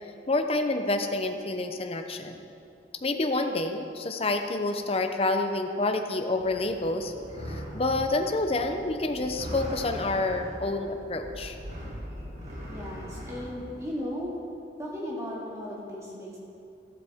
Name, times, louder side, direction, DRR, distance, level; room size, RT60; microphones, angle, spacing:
voice 1, 0.3-2.4 3.0-7.1 7.5-11.6, left 2 dB, 30° left, 6 dB, 0.7 m, -28 dB
sound 1, 6.4-13.9, equal, 40° right, 2.1 m, -40 dB
voice 2, 12.7-14.4 14.8-16.4, equal, 15° right, -5 dB, 2.2 m, -36 dB
13.5 x 12.0 x 3.6 m, 2.6 s
head